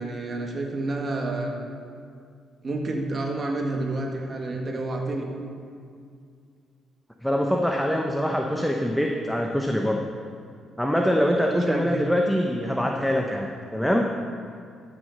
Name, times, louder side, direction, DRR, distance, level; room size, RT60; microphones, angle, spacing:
voice 1, 0.0-1.6 2.6-5.3 11.5-12.0, right 2 dB, 40° right, 1 dB, 1.8 m, -29 dB
voice 2, 7.2-10.0 10.8-14.1, equal, ahead, 1 dB, 0.8 m, -24 dB
12.5 x 6.4 x 6.7 m, 2.3 s
cardioid pair, 90°, 0 cm